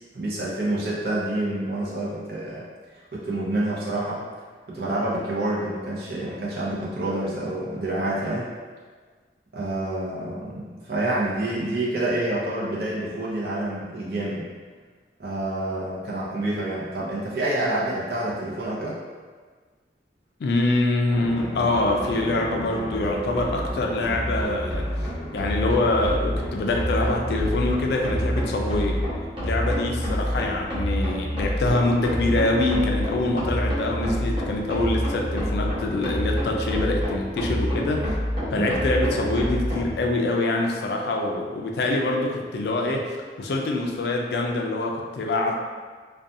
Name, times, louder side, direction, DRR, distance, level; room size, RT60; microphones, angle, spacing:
voice 1, 0.1-2.7 3.1-4.2 4.7-8.5 9.5-14.5 15.2-19.0 38.5-38.7, right 1 dB, 60° right, -6 dB, 0.6 m, -28 dB
voice 2, 20.4-25.1 25.3-29.0 29.4-38.0 38.5-45.5, left 2 dB, 65° left, 1 dB, 0.3 m, -25 dB
sound 1, 21.1-39.9, equal, 30° right, 0.8 m, -28 dB
2.5 x 2.3 x 2.6 m, 1.5 s
head